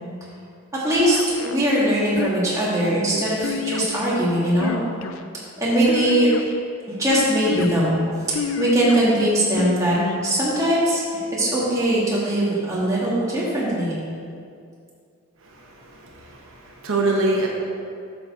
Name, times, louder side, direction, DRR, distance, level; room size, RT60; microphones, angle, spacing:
voice 1, 0.7-4.8 5.6-6.3 7.0-8.0 8.3-9.9 10.2-11.0 11.3-13.9, right 1 dB, 15° right, -7 dB, 1.6 m, -21 dB
sound 1, 1.0-1.6 2.2-2.7 3.4-4.1 4.5-5.2 5.9-6.6 7.1-7.7 8.3-9.0 9.6-10.2, left 5 dB, 75° left, 0.4 m, -28 dB
voice 2, 15.4-17.5, right 2 dB, 65° right, -2 dB, 0.9 m, -25 dB
8.5 x 6.4 x 3.6 m, 2.3 s
head